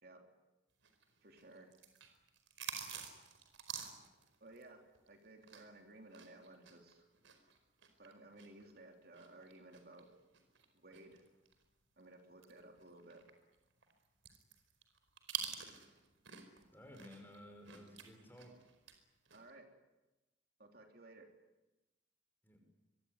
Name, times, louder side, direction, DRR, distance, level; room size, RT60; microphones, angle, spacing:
sound 1, 0.8-5.8 6.1-11.6 12.0-12.1 12.4-16.6 16.9-19.0 19.3-19.5, right 8 dB, 85° right, 4.8 m, -48 dB
voice 1, 1.2-1.7 4.4-7.1 8.0-10.1 10.7-11.2 12.0-13.2 19.3-19.7 20.6-21.3, right 2 dB, 50° right, 3 dB, 3.2 m, -57 dB
voice 2, 16.7-18.6 22.4-22.6, equal, 10° left, 4 dB, 5.5 m, -55 dB
25.0 x 23.0 x 9.7 m, 1.0 s
head